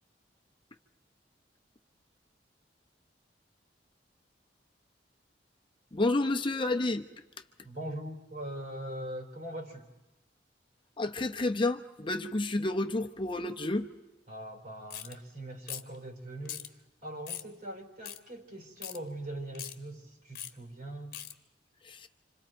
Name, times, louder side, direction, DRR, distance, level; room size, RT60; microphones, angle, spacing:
voice 1, 5.9-7.1 11.0-13.9 21.8-22.1, left 2 dB, 30° left, 5 dB, 0.8 m, -30 dB
voice 2, 7.6-9.9 14.3-16.7 17.0-21.2, right 1 dB, 50° right, 3 dB, 3.8 m, -41 dB
sound 1, 14.9-15.1 15.7-16.0 16.5-16.7 17.3-17.5 18.0-18.2 18.8-19.0 19.5-19.7 20.4-20.5 21.1-21.3, left 11 dB, 55° left, 1.2 m, -40 dB
29.5 x 26.5 x 4.6 m, 0.99 s
head